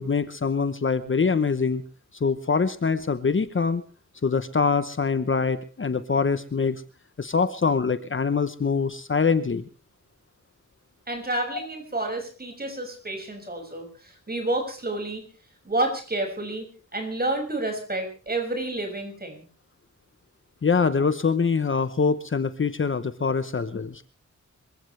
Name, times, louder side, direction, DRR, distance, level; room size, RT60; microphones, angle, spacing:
voice 1, 0.0-1.8 2.1-3.8 4.2-6.8 7.2-9.6 11.5-11.7 20.6-24.0, left 5 dB, 40° left, 12 dB, 1.0 m, -24 dB
voice 2, 11.1-15.3 15.6-19.4, right 2 dB, 30° right, 3 dB, 6.2 m, -30 dB
26.5 x 15.5 x 3.4 m, 0.38 s
wide cardioid pair, 140°, 31 cm